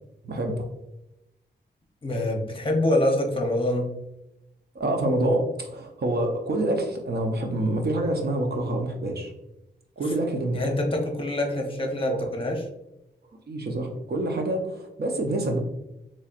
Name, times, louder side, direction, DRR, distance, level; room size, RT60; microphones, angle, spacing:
voice 1, 0.2-0.7 4.7-9.3 10.0-10.6 12.0-12.3 13.5-15.6, right 1 dB, 60° right, 2 dB, 0.7 m, -27 dB
voice 2, 2.0-3.9 10.0-10.1 10.5-12.6, left 1 dB, 30° left, 2 dB, 0.8 m, -25 dB
4.2 x 3.1 x 2.4 m, 0.89 s
wide cardioid pair, 110°, 19 cm